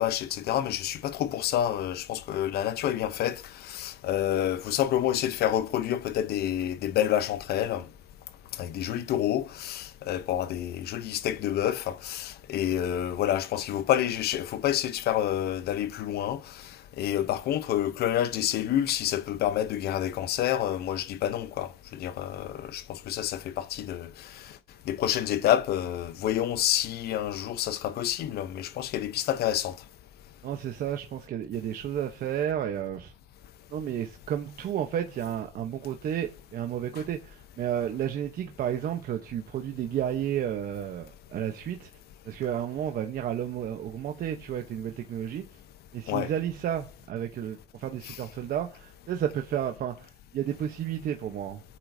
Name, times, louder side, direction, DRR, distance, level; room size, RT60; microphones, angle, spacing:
voice 1, 0.0-7.9 8.6-16.7 17.0-24.3 24.9-29.8 46.1-46.3, left 11 dB, 70° left, 0.8 m, -28 dB
voice 2, 30.4-33.1 33.7-41.9 42.2-45.4 45.9-51.6, right 10 dB, 60° right, 1.0 m, -32 dB
23.5 x 8.5 x 2.7 m
cardioid pair, 110°, 17 cm